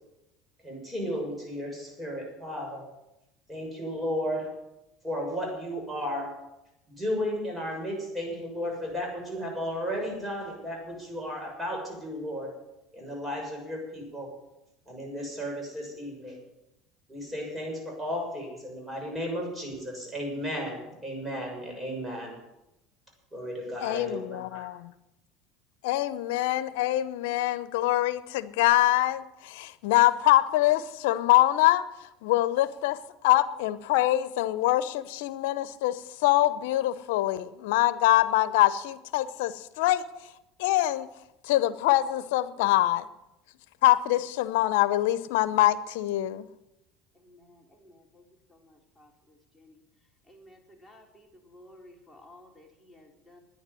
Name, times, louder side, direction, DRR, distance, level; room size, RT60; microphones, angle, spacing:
voice 1, 0.6-2.9 3.5-4.5 5.0-6.4 7.0-12.5 12.9-14.3 14.9-16.4 17.1-22.4 23.3-24.7, equal, 10° right, 0 dB, 6.7 m, -34 dB
voice 2, 23.8-24.9 25.8-31.8 32.2-33.0 33.2-40.0 40.6-41.1 41.5-43.1 43.8-46.5, left 15 dB, 80° left, 15 dB, 0.8 m, -24 dB
voice 3, 47.1-49.8 50.2-53.4, left 1 dB, 5° left, -1 dB, 3.7 m, -55 dB
10.5 x 9.9 x 9.7 m, 0.92 s
supercardioid pair, 100°, 0 cm